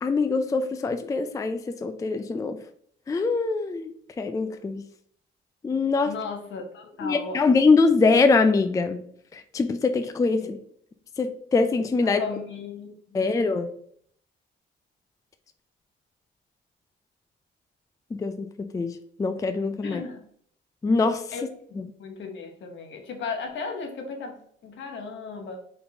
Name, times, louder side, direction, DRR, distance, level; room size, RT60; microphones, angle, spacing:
voice 1, 0.0-2.6 3.1-3.9 4.2-4.8 5.6-6.1 7.0-9.0 9.3-10.6 11.2-12.2 13.1-13.7 18.1-20.0 20.8-21.2 21.8-21.9, left 4 dB, 15° left, 9 dB, 0.3 m, -23 dB
voice 2, 6.0-7.4 10.4-10.5 12.0-13.3 19.8-20.2 21.3-21.4 21.7-25.6, left 4 dB, 70° left, 4 dB, 1.0 m, -36 dB
4.3 x 3.7 x 2.8 m, 0.63 s
cardioid pair, 90°, 20 cm